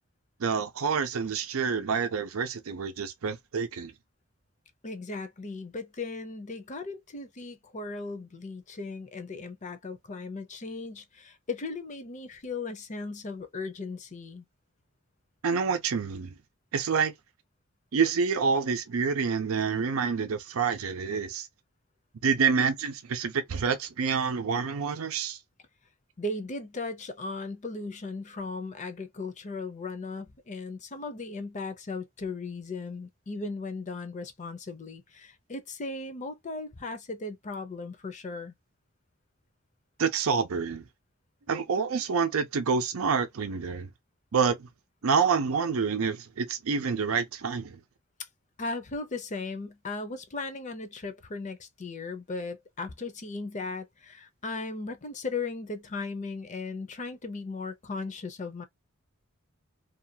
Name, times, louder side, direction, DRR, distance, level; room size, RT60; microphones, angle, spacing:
voice 1, 0.4-3.9 15.4-16.3 16.7-17.1 17.9-21.5 22.2-25.4 40.0-40.8 41.5-43.9 44.3-44.7 45.0-47.8, right 5 dB, 90° right, 0.5 m, -27 dB
voice 2, 4.8-14.5 26.2-38.5 48.6-58.6, left 3 dB, 35° left, 0.6 m, -37 dB
2.5 x 2.3 x 2.7 m
head